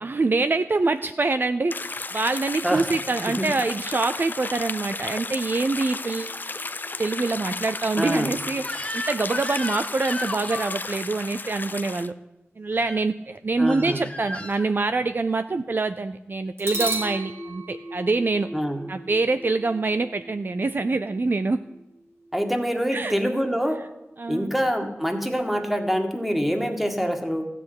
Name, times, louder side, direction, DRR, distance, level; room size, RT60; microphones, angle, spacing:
voice 1, 0.0-6.4 7.0-12.1 12.6-18.5 18.9-21.6 22.9-23.1 24.2-24.5, right 3 dB, 45° right, 10 dB, 0.5 m, -25 dB
sound 1, 1.7-12.1, left 3 dB, 40° left, 0.6 m, -34 dB
sound 2, 6.3-9.0 16.6-24.4, right 1 dB, 60° right, 2.8 m, -38 dB
voice 2, 7.9-8.3 13.6-14.0 18.5-18.8 22.3-23.8 24.3-27.5, equal, 5° right, 4 dB, 2.0 m, -25 dB
Crying sobbing / Screech, 8.6-10.8 12.7-13.0 13.7-14.6, left 2 dB, 25° left, 1.5 m, -34 dB
14.0 x 6.6 x 9.6 m, 0.95 s
wide cardioid pair, 65°, 5 cm